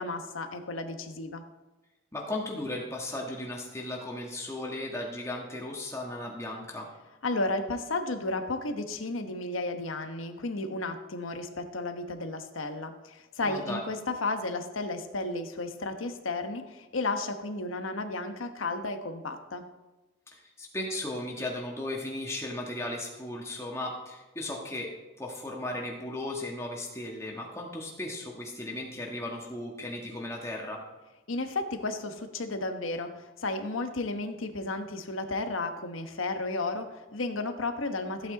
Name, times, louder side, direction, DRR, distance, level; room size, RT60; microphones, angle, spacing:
voice 1, 0.0-1.4 7.2-19.6 31.3-38.3, left 2 dB, 90° left, 7 dB, 1.1 m, -33 dB
voice 2, 2.1-6.9 13.4-13.8 20.3-30.8, left 1 dB, 15° left, -1 dB, 1.6 m, -36 dB
14.5 x 8.3 x 4.0 m, 1.1 s
head